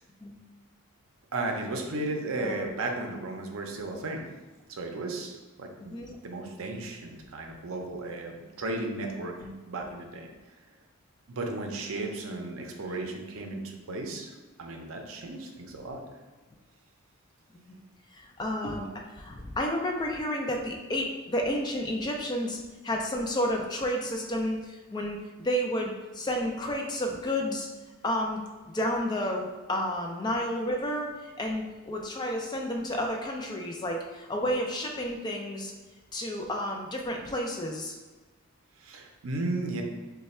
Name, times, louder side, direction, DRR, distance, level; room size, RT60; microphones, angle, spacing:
voice 1, 1.3-4.2 4.7-6.0 6.2-9.3 9.7-10.3 11.3-16.0 38.8-39.8, right 2 dB, 65° right, 2 dB, 0.5 m, -35 dB
voice 2, 2.4-2.7 5.9-6.2 9.4-9.6 12.3-12.5 17.5-17.8 18.1-22.6 22.8-27.7 28.0-28.4 28.7-35.7 36.1-37.9, equal, 20° left, 1 dB, 0.3 m, -31 dB
3.2 x 2.3 x 4.2 m, 1.3 s
head